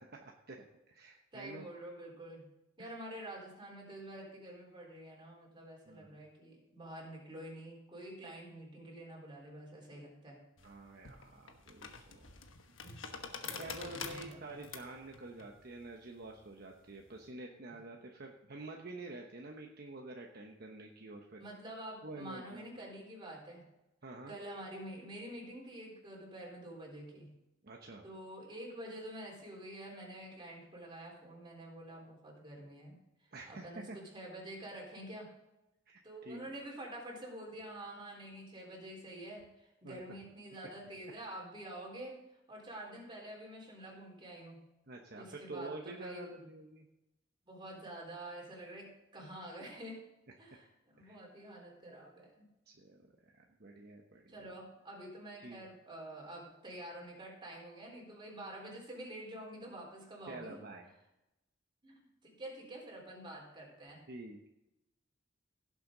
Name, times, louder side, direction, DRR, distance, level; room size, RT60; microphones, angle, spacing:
voice 1, 0.0-1.7 2.8-3.0 5.9-6.2 10.6-12.2 13.6-21.4 22.0-22.6 24.0-24.3 27.6-28.1 33.3-34.0 35.9-36.5 39.8-40.2 44.9-46.9 51.0-51.2 52.7-53.0 53.3-54.5 55.4-55.6 60.2-60.9 64.1-64.5, right 2 dB, 50° right, 1 dB, 1.0 m, -48 dB
voice 2, 1.3-2.5 2.8-10.4 12.8-13.0 13.4-14.6 21.4-23.7 24.3-27.3 28.0-33.0 33.5-35.3 36.0-42.2 42.5-44.6 45.1-46.3 47.5-50.1 50.4-52.5 54.3-60.6 61.8-64.1, right 1 dB, 25° right, -1 dB, 3.9 m, -48 dB
sound 1, 10.6-17.2, left 5 dB, 75° left, 1.2 m, -47 dB
16.5 x 7.7 x 3.9 m, 0.94 s
head